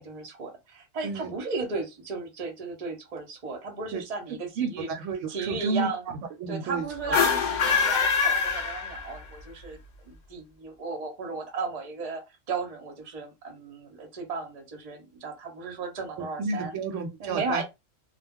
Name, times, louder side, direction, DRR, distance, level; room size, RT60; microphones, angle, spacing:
voice 1, 0.0-4.9 5.3-6.0 6.5-9.8 10.0-12.2 12.5-16.8 17.2-17.6, right 4 dB, 40° right, 0.6 m, -35 dB
voice 2, 1.0-1.3 3.9-4.0 4.6-7.2 7.7-7.9 16.2-17.6, right 4 dB, 70° right, 0.9 m, -32 dB
sound 1, 7.0-9.4, left 5 dB, 55° left, 0.5 m, -24 dB
2.2 x 2.0 x 3.5 m
omnidirectional pair, 1.4 m